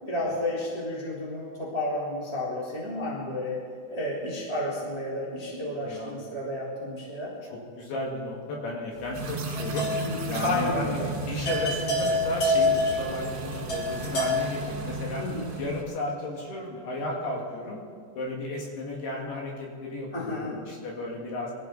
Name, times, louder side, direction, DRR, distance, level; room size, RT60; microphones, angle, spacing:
voice 1, 0.0-3.6 3.9-7.3 10.0-11.1 15.1-15.5 20.1-20.6, left 1 dB, 10° right, -5 dB, 1.8 m, -31 dB
voice 2, 5.8-6.2 7.5-9.9 10.3-15.2 15.6-17.8 18.1-21.5, left 2 dB, 60° left, -1 dB, 3.6 m, -34 dB
sound 1, 9.1-15.8, right 3 dB, 70° right, 4.9 m, -35 dB
sound 2, 9.2-10.3 10.5-10.7 11.0-11.1 11.5-14.5, left 2 dB, 35° left, 2.2 m, -27 dB
23.5 x 13.5 x 4.0 m, 2.2 s
omnidirectional pair, 5.6 m